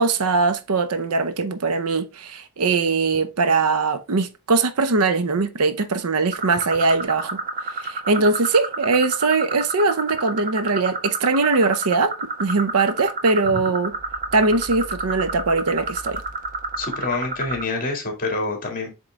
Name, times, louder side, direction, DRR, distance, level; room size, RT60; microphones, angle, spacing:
voice 1, 0.0-7.4 7.8-12.1 12.4-13.9 14.3-16.2, right 3 dB, 75° right, 0.7 m, -21 dB
sound 1, 6.3-17.6, right 3 dB, 40° right, 1.1 m, -29 dB
voice 2, 16.8-18.9, left 3 dB, 40° left, 2.0 m, -27 dB
7.5 x 3.8 x 3.3 m
head